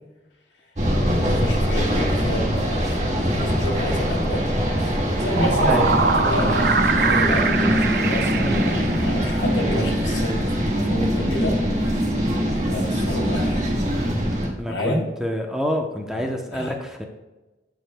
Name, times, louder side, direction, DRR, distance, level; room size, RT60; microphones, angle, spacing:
sound 1, 0.8-14.5, equal, 40° right, 1.8 m, -22 dB
voice 1, 1.2-4.5 5.2-11.6 12.5-13.7 14.6-15.1 16.1-16.2 16.5-16.8, left 1 dB, 85° left, 1 dB, 2.1 m, -29 dB
sound 2, 5.1-9.5, right 4 dB, 55° right, 0.6 m, -23 dB
voice 2, 14.6-17.0, equal, 5° right, 2 dB, 0.7 m, -27 dB
15.0 x 5.2 x 2.2 m, 1.1 s
head